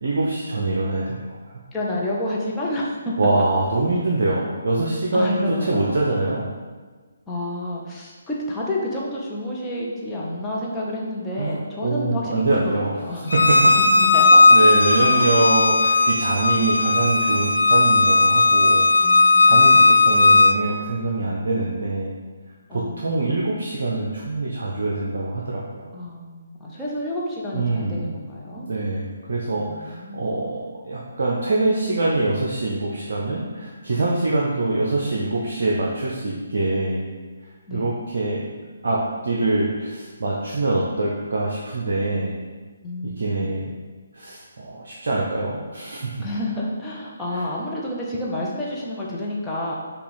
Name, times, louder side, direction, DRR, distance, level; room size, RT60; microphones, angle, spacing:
voice 1, 0.0-1.6 3.2-6.5 11.4-11.5 11.8-12.9 13.3-13.4 14.5-18.9 19.2-22.1 22.7-25.9 27.5-28.1 28.6-37.1 37.7-38.4 38.8-42.3 43.0-43.7 44.1-46.2 47.3-47.4, right 2 dB, 55° right, -4 dB, 0.6 m, -24 dB
voice 2, 1.7-3.1 5.1-5.9 7.3-13.3 13.8-14.4 15.1-15.3 19.0-19.9 22.7-23.3 25.9-28.7 29.6-30.3 37.7-37.9 42.8-43.5 46.2-49.7, left 1 dB, 10° left, -6 dB, 0.7 m, -29 dB
Bowed string instrument, 13.3-20.5, left 3 dB, 70° left, 0.3 m, -16 dB
5.4 x 2.4 x 4.0 m, 1.4 s
figure-of-eight pair, 140°, 0 cm